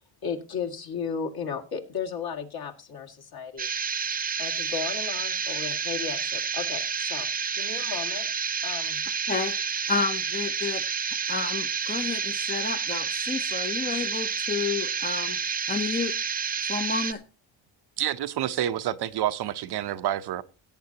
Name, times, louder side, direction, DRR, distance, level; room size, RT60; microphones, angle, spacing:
voice 1, 0.2-3.7 4.4-7.3 7.5-8.3 8.6-9.0, left 6 dB, 50° left, 2 dB, 2.2 m, -34 dB
sound 1, 3.6-17.1, right 6 dB, 20° right, 0.6 m, -29 dB
voice 2, 9.3-10.8 11.3-15.4 15.7-16.1 16.7-17.2, left 4 dB, 20° left, 7 dB, 0.7 m, -30 dB
voice 3, 18.0-20.4, right 11 dB, 55° right, 11 dB, 0.8 m, -28 dB
17.5 x 8.5 x 2.9 m, 0.31 s
cardioid pair, 105°, 47 cm